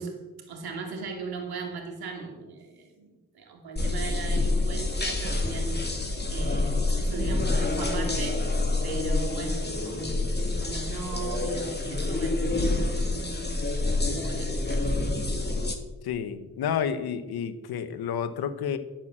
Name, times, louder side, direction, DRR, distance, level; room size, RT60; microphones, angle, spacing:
voice 1, 0.0-5.8 6.3-8.5 8.8-13.9 14.2-14.9, right 4 dB, 85° right, 2 dB, 2.6 m, -38 dB
sound 1, 3.8-15.8, left 2 dB, 25° left, 2.7 m, -27 dB
voice 2, 16.0-18.8, left 8 dB, 90° left, 12 dB, 1.0 m, -30 dB
11.0 x 9.1 x 7.5 m, 1.1 s
cardioid pair, 50°, 37 cm